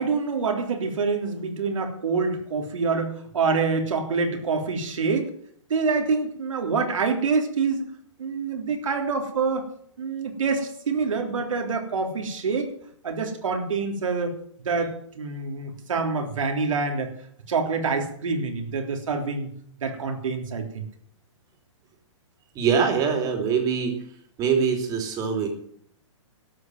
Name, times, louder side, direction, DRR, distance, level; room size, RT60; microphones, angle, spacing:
voice 1, 0.0-5.3 5.7-7.9 8.2-9.7 10.0-12.7 13.0-14.4 14.6-17.1 17.5-19.5 19.8-20.9, right 4 dB, 90° right, 4 dB, 3.4 m, -26 dB
voice 2, 22.5-23.9 24.4-25.5, right 6 dB, 20° right, 4 dB, 3.0 m, -23 dB
12.5 x 8.4 x 9.2 m, 0.63 s
hypercardioid pair, 155°, 16 cm